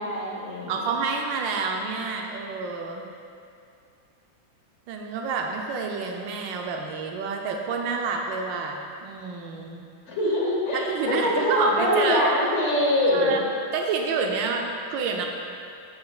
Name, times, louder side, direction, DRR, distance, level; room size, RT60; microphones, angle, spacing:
voice 1, 0.0-0.9 10.1-13.4, left 1 dB, 45° left, -4 dB, 1.2 m, -24 dB
voice 2, 0.7-3.1 4.9-9.8 10.9-12.2 13.1-13.4 13.7-15.3, right 4 dB, 75° right, 2 dB, 1.2 m, -28 dB
7.6 x 5.4 x 2.3 m, 2.5 s
omnidirectional pair, 2.2 m